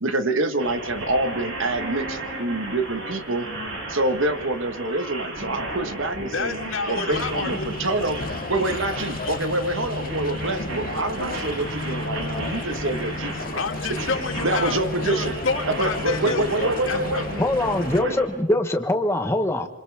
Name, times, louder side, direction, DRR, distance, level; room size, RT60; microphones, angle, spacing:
voice 1, 0.0-3.5 3.9-6.6 6.9-8.2 8.5-13.6 14.4-15.3 15.7-17.2 18.0-18.2, right 2 dB, 65° right, 8 dB, 1.6 m, -26 dB
sound 1, 0.6-18.2, right 1 dB, 80° right, 7.7 m, -34 dB
voice 2, 6.3-7.7 9.2-9.3 13.5-17.5, left 4 dB, 70° left, 2 dB, 3.2 m, -29 dB
sound 2, 7.1-18.0, left 3 dB, 45° left, 0.8 m, -33 dB
voice 3, 17.4-19.7, left 1 dB, 15° left, 5 dB, 1.4 m, -23 dB
27.0 x 26.5 x 3.7 m, 1.0 s
head